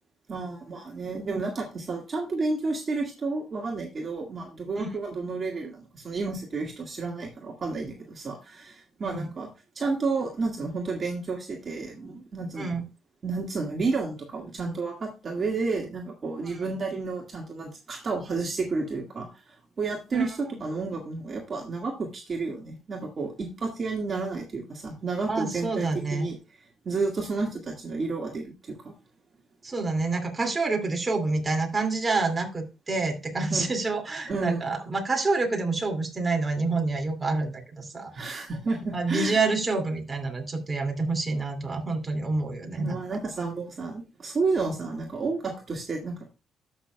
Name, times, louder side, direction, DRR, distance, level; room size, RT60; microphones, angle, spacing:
voice 1, 0.3-9.5 9.8-12.7 13.2-26.4 26.9-28.9 33.5-33.7 34.3-34.8 38.1-39.4 42.8-46.3, right 3 dB, 45° right, 0 dB, 1.8 m, -31 dB
voice 2, 25.3-26.3 29.6-38.5 38.9-43.0, right 3 dB, 25° right, 3 dB, 2.4 m, -28 dB
13.0 x 6.2 x 2.3 m, 0.28 s
cardioid pair, 90°, 0 cm